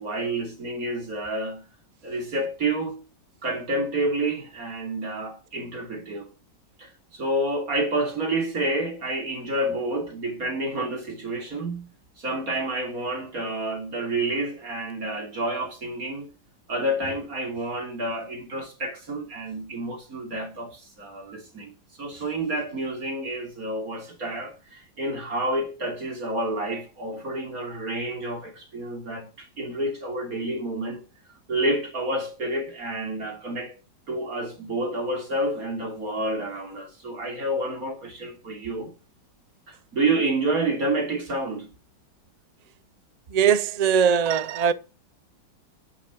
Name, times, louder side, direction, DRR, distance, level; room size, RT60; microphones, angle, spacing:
voice 1, 0.0-1.7 2.0-3.0 3.4-6.3 6.8-11.9 12.2-16.3 16.7-21.7 22.0-31.0 31.5-33.7 34.1-38.9 39.7-41.7, right 1 dB, 50° right, 3.5 m, -29 dB
voice 2, 43.3-44.7, right 7 dB, 90° right, 0.3 m, -20 dB
10.5 x 9.2 x 6.3 m
omnidirectional pair, 2.0 m